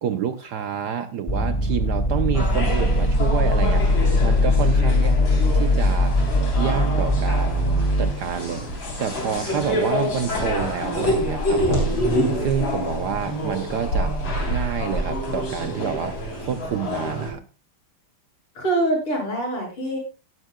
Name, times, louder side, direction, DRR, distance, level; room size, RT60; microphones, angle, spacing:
voice 1, 0.0-5.2 5.5-6.2 6.6-12.0 12.3-14.2 14.5-17.4, right 8 dB, 65° right, 9 dB, 1.0 m, -28 dB
sound 1, 1.3-8.1, left 1 dB, 20° left, 1.5 m, -20 dB
sound 2, 2.3-17.3, equal, 60° left, 4.5 m, -27 dB
voice 2, 18.6-20.0, right 2 dB, 80° left, -2 dB, 7.4 m, -24 dB
17.5 x 10.5 x 2.3 m, 0.32 s
omnidirectional pair, 2.4 m